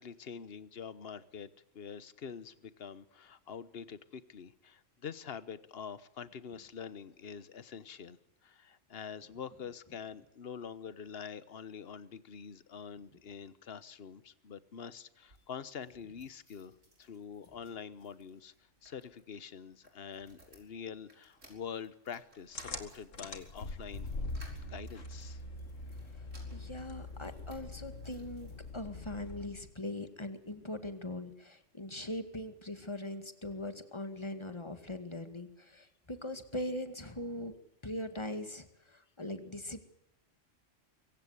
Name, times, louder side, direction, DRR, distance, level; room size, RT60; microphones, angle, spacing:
voice 1, 0.0-18.5 18.8-24.1 24.6-25.4, left 7 dB, 55° left, 16 dB, 1.3 m, -46 dB
sound 1, 15.1-29.2 29.7-30.6 30.9-31.0 31.2-31.3, right 1 dB, 80° right, 5.9 m, -63 dB
sound 2, 22.6-29.7, left 2 dB, 90° left, 2.4 m, -43 dB
voice 2, 26.5-37.5 37.8-39.9, left 1 dB, 20° left, 9 dB, 2.1 m, -41 dB
24.0 x 16.0 x 8.1 m, 0.83 s
omnidirectional pair, 1.3 m